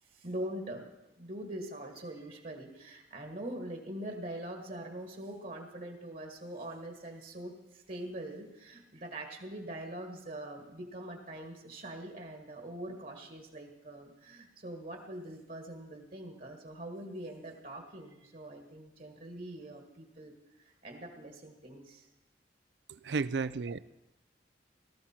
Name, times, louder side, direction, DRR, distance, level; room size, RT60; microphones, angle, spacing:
voice 1, 0.0-0.9 1.2-22.1, right 1 dB, 50° right, 3 dB, 1.6 m, -43 dB
voice 2, 22.9-23.8, right 4 dB, 70° right, 17 dB, 0.5 m, -33 dB
18.0 x 13.5 x 4.4 m, 1.0 s
head